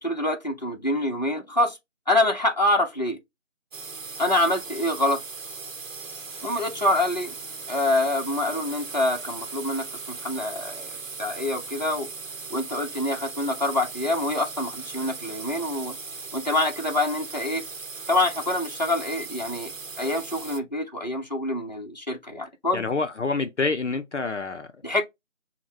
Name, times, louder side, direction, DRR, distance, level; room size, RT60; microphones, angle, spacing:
voice 1, 0.0-1.8 2.1-3.2 4.2-5.2 6.4-7.3 7.7-10.9 11.2-12.1 12.5-15.9 16.3-17.6 18.1-19.7 20.0-22.8 24.8-25.0, left 1 dB, 35° left, 0.8 m, -26 dB
sound 1, 3.7-20.6, right 4 dB, 80° right, 0.8 m, -38 dB
voice 2, 22.7-24.8, left 4 dB, 65° left, 0.6 m, -27 dB
5.7 x 2.1 x 3.0 m
figure-of-eight pair, 175°, 38 cm